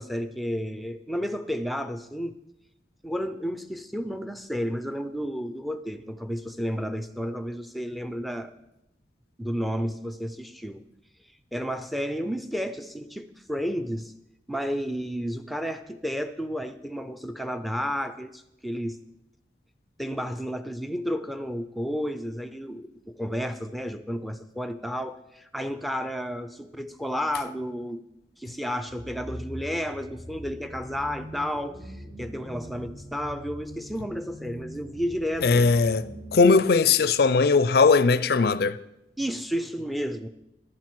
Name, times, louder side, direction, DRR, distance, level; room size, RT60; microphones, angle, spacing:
voice 1, 0.0-2.4 3.0-8.5 9.4-10.8 11.5-14.1 14.5-19.0 20.0-28.0 28.4-35.7 39.2-40.3, equal, ahead, 0.5 m, -32 dB
sound 1, 28.9-36.5, equal, 65° right, 3.9 m, -42 dB
voice 2, 35.4-38.8, left 4 dB, 60° left, 0.4 m, -19 dB
11.0 x 7.3 x 6.1 m
head